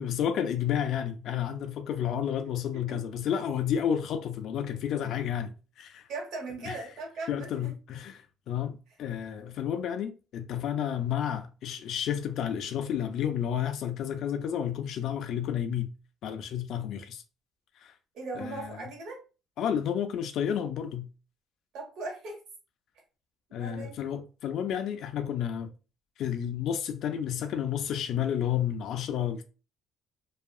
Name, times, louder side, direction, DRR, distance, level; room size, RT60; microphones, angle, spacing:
voice 1, 0.0-6.1 6.6-6.8 7.3-15.9 16.2-17.2 17.8-17.9 18.4-18.8 19.6-21.1 23.5-25.7 26.2-29.4, left 9 dB, 65° left, 0.3 m, -31 dB
voice 2, 6.1-7.7 18.1-19.2 21.7-22.4 23.6-24.0, right 3 dB, 75° right, 1.2 m, -38 dB
2.7 x 2.4 x 2.3 m
cardioid pair, 120°, 0 cm